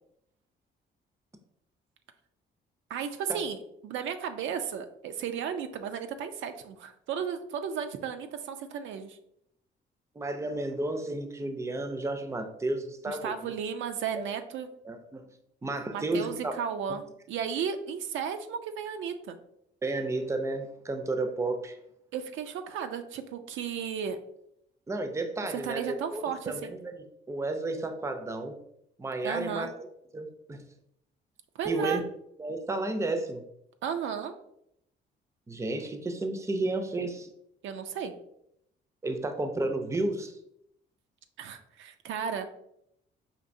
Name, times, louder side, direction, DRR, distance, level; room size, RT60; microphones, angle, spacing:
voice 1, 2.9-3.6 3.8-9.2 13.1-14.7 15.9-19.4 22.1-24.2 25.5-26.7 29.2-29.7 31.6-32.0 33.8-34.3 37.6-38.1 41.4-42.5, right 7 dB, 75° right, 7 dB, 0.4 m, -34 dB
voice 2, 10.2-13.5 14.8-15.3 15.6-16.6 19.8-21.8 24.9-26.9 27.3-28.6 29.0-29.7 30.1-30.6 31.6-32.0 32.4-33.4 35.5-37.3 39.0-40.4, right 2 dB, 15° right, 6 dB, 0.5 m, -32 dB
5.1 x 2.7 x 2.6 m, 0.76 s
cardioid pair, 90°, 20 cm